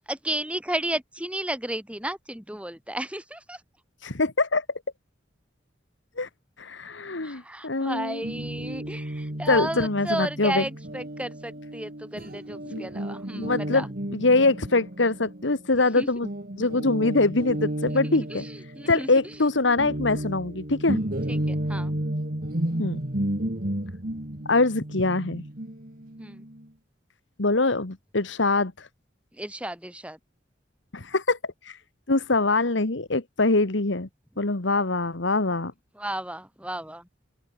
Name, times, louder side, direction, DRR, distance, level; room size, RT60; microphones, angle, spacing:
voice 1, 0.1-3.6 7.2-13.9 15.9-16.1 17.9-19.1 21.3-21.9 26.2-26.4 29.4-30.2 36.0-37.0, right 1 dB, 5° right, 6.1 m, -33 dB
voice 2, 4.0-4.7 6.2-6.3 6.6-8.2 9.5-10.6 12.7-12.9 13.4-16.3 16.6-18.5 18.9-21.0 22.8-23.0 24.5-25.4 27.4-28.9 30.9-31.8 32.1-34.1 34.4-35.7, left 3 dB, 80° left, 1.7 m, -24 dB
Guitar, 8.2-15.9 16.2-26.7, right 1 dB, 50° right, 2.4 m, -33 dB
open air
head